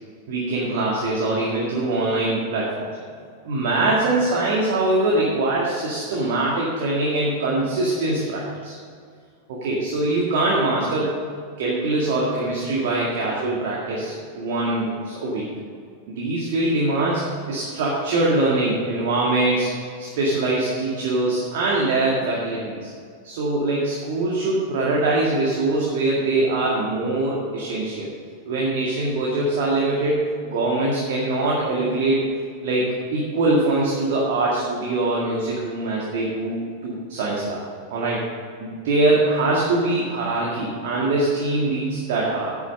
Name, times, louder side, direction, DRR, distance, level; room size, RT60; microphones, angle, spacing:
voice 1, 0.3-2.9 3.4-8.8 9.5-11.1 11.6-15.5 16.1-19.7 20.0-22.9 23.2-28.1 28.5-32.2 32.6-32.9 33.1-37.6 37.9-38.2 38.6-42.6, right 2 dB, 55° right, -4 dB, 2.0 m, -23 dB
9.4 x 8.2 x 6.5 m, 2.1 s
figure-of-eight pair, 90°, 0 cm